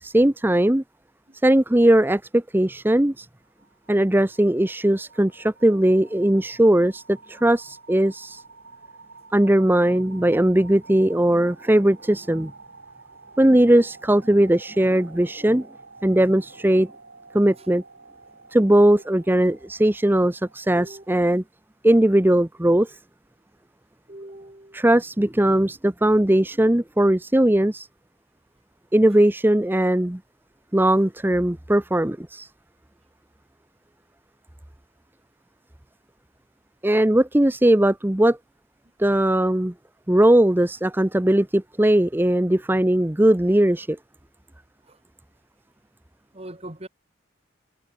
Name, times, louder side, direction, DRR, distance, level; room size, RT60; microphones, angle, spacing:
voice 1, 0.0-0.8 1.4-3.3 3.9-8.4 9.3-12.5 13.4-15.7 16.0-16.9 17.3-17.8 18.5-21.4 21.8-23.0 24.7-27.9 28.9-30.2 30.7-32.5 36.8-38.4 39.0-39.7 40.1-44.0, right 1 dB, 10° right, 0.7 m, -19 dB
sound 1, 3.5-21.3, right 3 dB, 70° right, 5.0 m, -49 dB
voice 2, 24.1-24.8 44.8-45.0 46.3-46.9, right 1 dB, 30° right, 2.9 m, -41 dB
head